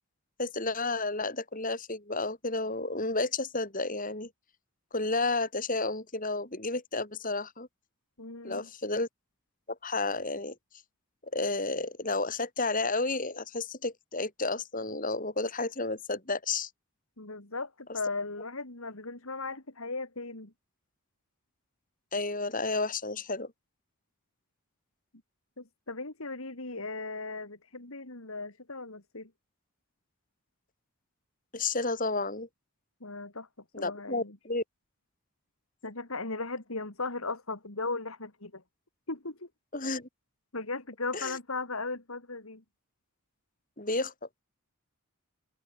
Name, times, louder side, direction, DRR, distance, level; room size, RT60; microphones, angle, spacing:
voice 1, 0.4-4.3 4.9-7.7 8.4-9.1 9.7-10.5 11.3-16.7 22.1-23.5 31.5-32.5 33.7-34.6 39.7-40.1 41.1-41.3 43.8-44.1, left 3 dB, 40° left, 6.7 m, -31 dB
voice 2, 8.2-8.7 17.2-20.5 25.6-29.3 33.0-33.5 33.8-34.4 35.8-38.6 39.1-39.5 40.5-42.6, left 3 dB, 75° left, 3.2 m, -37 dB
head